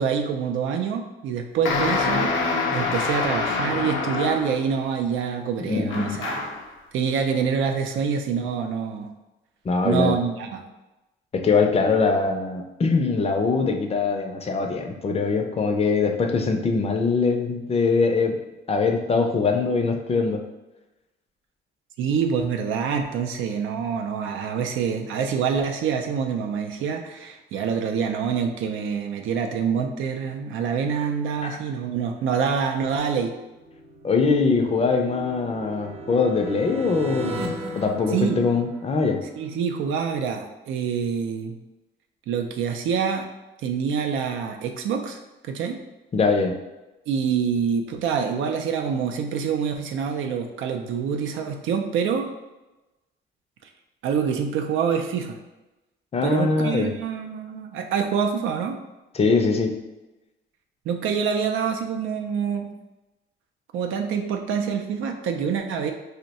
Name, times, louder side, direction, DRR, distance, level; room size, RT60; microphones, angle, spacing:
voice 1, 0.0-2.3 2.7-6.5 6.9-9.1 9.8-10.6 22.0-33.3 38.1-38.4 39.4-41.6 42.3-43.3 43.6-45.8 47.1-52.3 53.6-53.7 54.0-55.4 56.2-58.8 60.9-62.7 63.7-65.9, right 6 dB, 80° right, 4 dB, 0.4 m, -26 dB
sound 1, 1.6-4.7 5.9-6.7, left 4 dB, 75° left, 0.5 m, -25 dB
voice 2, 5.7-6.2 9.6-10.2 11.3-18.3 18.7-20.4 31.4-31.5 34.0-37.5 37.7-39.2 46.1-46.6 56.1-56.9 59.1-59.7, left 4 dB, 30° left, 3 dB, 0.5 m, -22 dB
sound 2, 33.4-39.2, right 1 dB, 30° right, 0.7 m, -36 dB
2.6 x 2.1 x 4.0 m, 1.0 s
cardioid pair, 90°, 20 cm